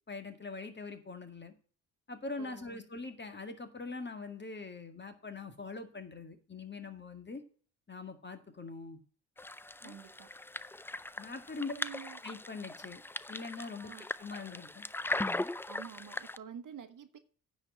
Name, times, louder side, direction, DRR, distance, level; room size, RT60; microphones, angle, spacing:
voice 1, 0.1-1.5 2.1-7.4 7.9-9.0 9.8-9.9 11.2-11.7 12.2-13.0 13.3-13.9 14.2-14.9, left 3 dB, 25° left, 1.9 m, -43 dB
voice 2, 2.4-2.8 9.8-10.3 11.7-12.2 13.8-14.1 15.6-17.2, right 8 dB, 50° right, 1.2 m, -48 dB
sound 1, 9.4-16.4, left 2 dB, 5° left, 0.4 m, -39 dB
9.7 x 4.7 x 7.4 m
supercardioid pair, 65°, 40 cm